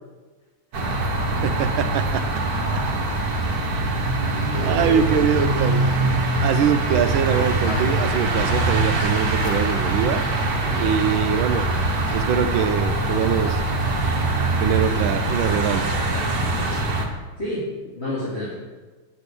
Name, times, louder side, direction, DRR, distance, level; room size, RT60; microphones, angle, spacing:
sound 1, 0.7-17.1, right 2 dB, 50° right, 1.7 m, -23 dB
voice 1, 1.4-2.2 4.6-6.0 6.4-10.2 10.8-11.7 12.1-13.6 14.6-15.9, right 8 dB, 75° right, 9 dB, 1.5 m, -23 dB
voice 2, 4.3-5.1 10.6-11.2 16.1-16.9 17.4-18.5, left 1 dB, 30° left, -8 dB, 2.8 m, -32 dB
sound 2, 7.2-16.8, left 7 dB, 80° left, 1.6 m, -36 dB
8.9 x 6.4 x 8.5 m, 1.3 s
omnidirectional pair, 2.3 m